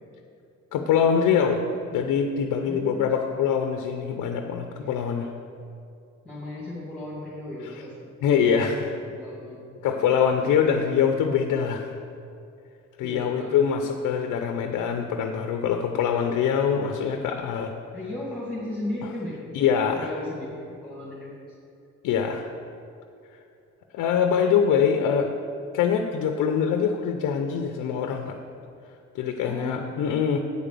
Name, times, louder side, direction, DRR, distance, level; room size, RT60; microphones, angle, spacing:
voice 1, 0.7-1.6 1.9-5.3 8.2-8.9 9.8-11.9 13.0-17.7 19.5-20.1 22.0-22.5 23.9-25.3 25.7-28.4 29.1-30.4, left 7 dB, 85° left, 5 dB, 0.6 m, -24 dB
voice 2, 2.6-3.1 4.7-5.3 6.2-7.9 8.6-10.0 13.0-13.5 17.9-19.4 20.0-21.6 29.5-30.0, left 1 dB, 5° left, -7 dB, 2.3 m, -36 dB
8.4 x 5.0 x 6.8 m, 2.5 s
cardioid pair, 90°, 30 cm